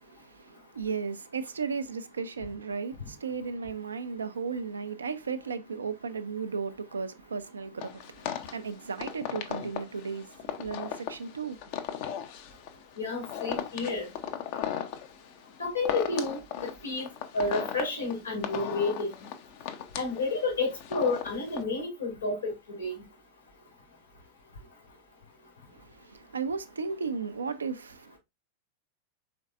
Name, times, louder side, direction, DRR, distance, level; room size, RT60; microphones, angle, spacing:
voice 1, 0.0-11.8 25.7-28.2, right 5 dB, 75° right, 0.4 m, -35 dB
sound 1, 7.8-21.6, left 9 dB, 45° left, 0.6 m, -37 dB
voice 2, 13.0-14.1 15.6-17.1 17.3-19.2 19.9-22.9, left 3 dB, 75° left, 2.4 m, -30 dB
5.1 x 3.9 x 2.4 m
figure-of-eight pair, 90°, 0 cm